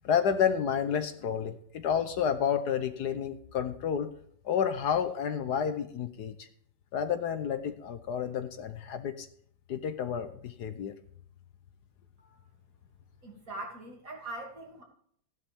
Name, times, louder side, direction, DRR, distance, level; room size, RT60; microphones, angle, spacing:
voice 1, 0.0-4.1 4.4-6.5 6.9-9.3 9.7-10.9, left 8 dB, 65° left, 9 dB, 1.3 m, -30 dB
voice 2, 13.2-14.8, right 2 dB, 45° right, -1 dB, 3.2 m, -42 dB
15.5 x 11.0 x 3.6 m, 0.64 s
omnidirectional pair, 2.0 m